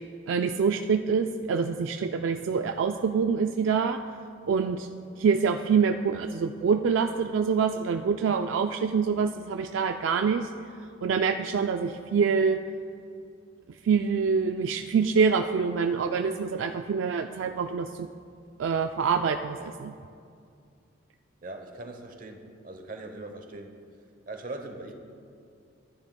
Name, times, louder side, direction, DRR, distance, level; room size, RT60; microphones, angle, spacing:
voice 1, 0.3-4.0 4.5-4.9 5.2-10.5 11.0-12.6 13.8-18.1 18.6-19.9, right 5 dB, 75° right, 6 dB, 0.3 m, -25 dB
voice 2, 21.4-23.7 24.3-24.9, right 2 dB, 45° right, 5 dB, 0.9 m, -41 dB
14.5 x 10.5 x 2.3 m, 2.3 s
head